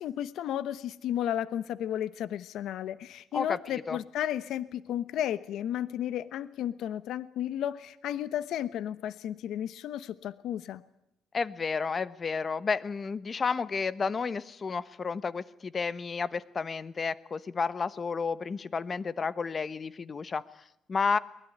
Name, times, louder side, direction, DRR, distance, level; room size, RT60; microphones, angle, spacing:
voice 1, 0.0-10.8, left 11 dB, 70° left, 15 dB, 1.0 m, -33 dB
voice 2, 3.3-4.0 11.3-20.4 20.9-21.2, left 5 dB, 30° left, 16 dB, 1.1 m, -31 dB
23.0 x 21.0 x 9.5 m, 0.79 s
cardioid pair, 135°, 0 cm